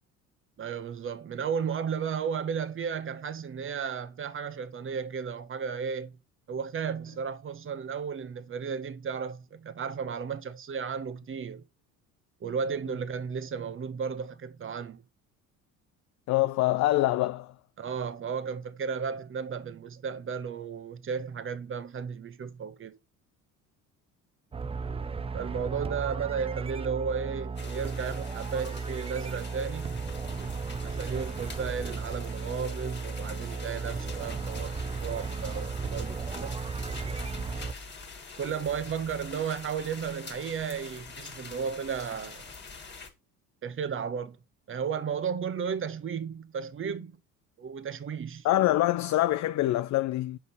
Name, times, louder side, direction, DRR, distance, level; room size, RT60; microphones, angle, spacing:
voice 1, 0.6-6.2 6.5-11.6 12.4-15.0 17.8-23.0 25.3-30.0 30.8-36.6 38.4-42.5 43.6-44.4 44.7-47.1 47.6-48.5, right 6 dB, 30° right, 0.9 m, -34 dB
voice 2, 16.3-17.5 48.4-50.4, left 15 dB, 45° left, 0.4 m, -25 dB
sound 1, 24.5-37.7, right 4 dB, 15° right, 0.4 m, -35 dB
sound 2, 27.6-43.1, left 4 dB, 25° left, 1.8 m, -45 dB
5.5 x 5.3 x 4.0 m
hypercardioid pair, 65°, 41 cm